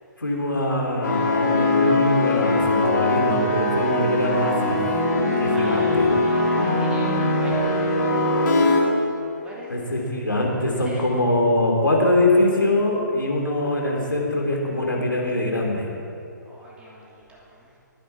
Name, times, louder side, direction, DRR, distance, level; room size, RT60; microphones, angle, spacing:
voice 1, 0.2-4.8 5.4-6.1 9.7-15.9, left 1 dB, 85° left, -1 dB, 3.3 m, -23 dB
sound 1, 1.0-8.8, left 2 dB, 65° left, 3.6 m, -21 dB
voice 2, 5.5-9.9 10.8-11.1 16.5-17.7, equal, 10° right, -4 dB, 2.7 m, -42 dB
21.5 x 10.0 x 4.7 m, 2.7 s
figure-of-eight pair, 130°, 11 cm